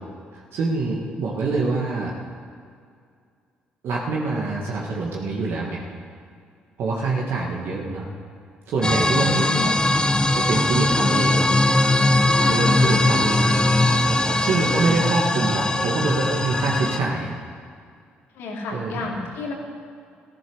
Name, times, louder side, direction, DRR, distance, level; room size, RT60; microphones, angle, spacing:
voice 1, 0.3-2.1 3.8-5.8 6.8-8.1 8.7-9.7 10.3-11.5 12.5-13.6 14.0-17.3 18.7-19.1, right 3 dB, 65° right, -3 dB, 2.0 m, -25 dB
sound 1, 8.8-17.0, left 2 dB, 20° left, 1.1 m, -20 dB
voice 2, 9.1-10.2 10.7-11.6 12.4-13.0 13.4-13.5 14.6-14.9 18.3-19.5, left 3 dB, 75° left, -1 dB, 3.0 m, -32 dB
14.0 x 11.5 x 6.4 m, 2.2 s
hypercardioid pair, 55°, 4 cm